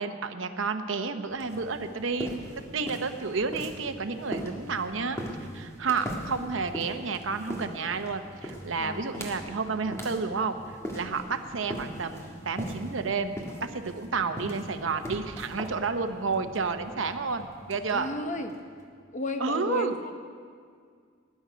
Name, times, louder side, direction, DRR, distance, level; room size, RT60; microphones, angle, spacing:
voice 1, 0.0-2.4 2.7-5.2 5.5-10.6 10.9-18.1 19.4-20.0, right 4 dB, 75° right, 8 dB, 0.9 m, -31 dB
sound 1, 1.3-18.8, equal, 15° left, 1.8 m, -41 dB
voice 2, 8.8-9.1 17.9-18.5 19.1-20.2, left 1 dB, 40° left, 5 dB, 1.1 m, -33 dB
20.0 x 10.5 x 5.1 m, 2.1 s
head